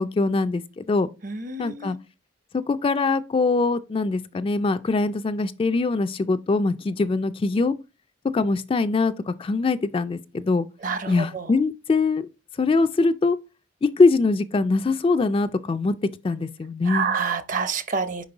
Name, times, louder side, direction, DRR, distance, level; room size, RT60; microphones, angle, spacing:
voice 1, 0.0-1.1 1.6-2.0 2.7-7.7 8.3-10.7 11.1-12.3 12.6-13.4 13.8-16.0 16.2-17.1, left 3 dB, 30° left, 0.3 m, -22 dB
voice 2, 1.2-2.0 10.8-11.5 16.9-18.2, right 5 dB, 45° right, 0.7 m, -28 dB
5.2 x 5.1 x 3.9 m
head